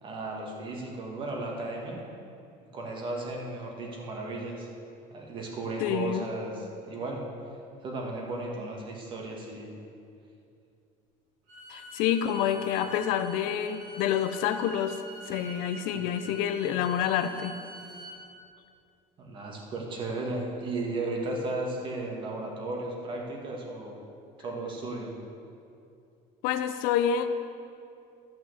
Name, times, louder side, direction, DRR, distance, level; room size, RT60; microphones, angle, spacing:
voice 1, 0.0-2.0 2.7-4.7 5.1-7.3 7.8-9.7 15.9-16.1 19.2-24.0 24.4-25.1, right 2 dB, 35° right, 0 dB, 2.0 m, -35 dB
voice 2, 5.8-6.3 11.7-15.0 15.3-17.5 26.4-27.3, left 9 dB, 75° left, 10 dB, 0.7 m, -28 dB
Bowed string instrument, 11.5-18.2, right 1 dB, 65° right, 2.5 m, -45 dB
12.5 x 5.7 x 8.0 m, 2.5 s
cardioid pair, 150°, 14 cm